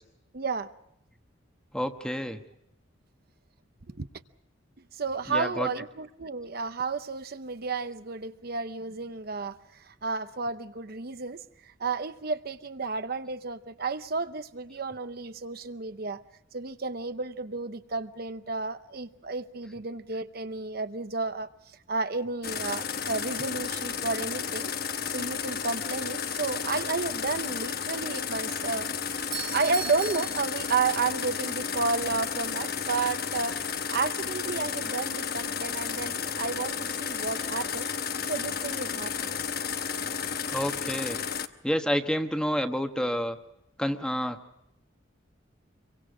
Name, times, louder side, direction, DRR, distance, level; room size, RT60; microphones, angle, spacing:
voice 1, 0.3-0.7 3.9-4.1 4.9-16.2 16.5-21.5 21.9-24.7 25.1-28.9 29.5-33.6 33.9-37.9 38.2-39.5, right 4 dB, 50° right, 0.8 m, -32 dB
voice 2, 1.7-2.4 5.3-5.7 40.5-41.2 41.6-43.4 43.8-44.4, equal, 5° left, 1.3 m, -29 dB
sound 1, 22.4-41.5, left 6 dB, 55° left, 1.0 m, -32 dB
Doorbell, 29.1-31.3, right 6 dB, 20° right, 1.4 m, -39 dB
27.0 x 23.5 x 5.0 m
head